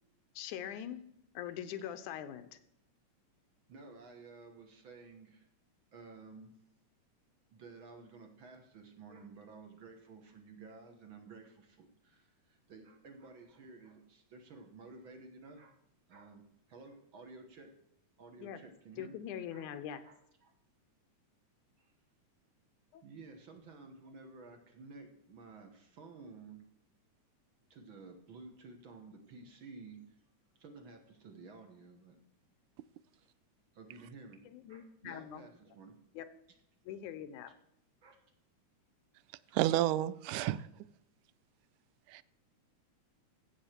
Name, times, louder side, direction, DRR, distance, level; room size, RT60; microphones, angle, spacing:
voice 1, 0.4-1.0 1.3-2.5 18.4-18.6 19.0-20.0 22.9-23.0 34.5-35.4 36.2-36.3 36.9-37.5, left 10 dB, 90° left, 11 dB, 2.3 m, -42 dB
voice 2, 3.7-5.5 5.9-6.5 7.5-15.8 16.1-17.7 18.2-19.2 19.5-19.7 20.0-20.5 21.8-21.9 23.0-26.7 27.7-30.2 30.6-32.2 33.2-33.3 33.7-36.0 38.0-38.2, right 3 dB, 50° right, 5 dB, 1.7 m, -53 dB
voice 3, 39.5-40.7 42.1-42.2, right 14 dB, 85° right, 17 dB, 2.0 m, -30 dB
15.0 x 7.1 x 4.5 m, 0.78 s
omnidirectional pair, 3.5 m